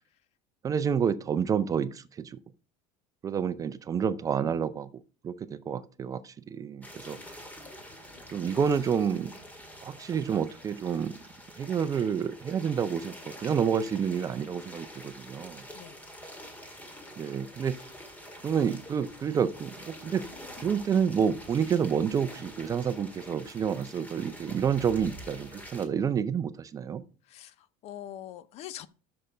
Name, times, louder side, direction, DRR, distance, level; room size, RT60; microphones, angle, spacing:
voice 1, 0.6-2.4 3.2-4.9 5.2-7.2 8.3-9.3 9.8-11.1 11.6-15.6 17.2-17.8 18.4-20.2 20.6-27.0, right 7 dB, 25° right, 0.5 m, -29 dB
sound 1, 6.8-25.9, equal, 10° left, 1.8 m, -46 dB
voice 2, 27.3-28.9, left 11 dB, 45° left, 0.6 m, -44 dB
6.8 x 6.6 x 5.0 m
cardioid pair, 145°, 15 cm